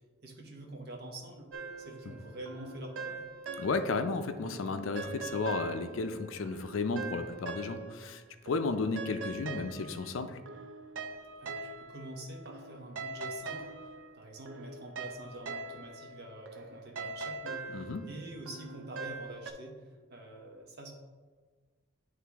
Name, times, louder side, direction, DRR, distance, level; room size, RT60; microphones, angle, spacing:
voice 1, 0.2-1.5 1.8-3.3 11.4-20.9, right 1 dB, 50° right, 1 dB, 0.9 m, -46 dB
sound 1, 1.5-4.1 4.5-8.2 8.5-19.5, right 3 dB, 65° right, 0.5 m, -43 dB
voice 2, 3.6-10.4 17.7-18.0, left 3 dB, 75° left, 9 dB, 0.4 m, -33 dB
9.4 x 3.3 x 3.4 m, 1.4 s
head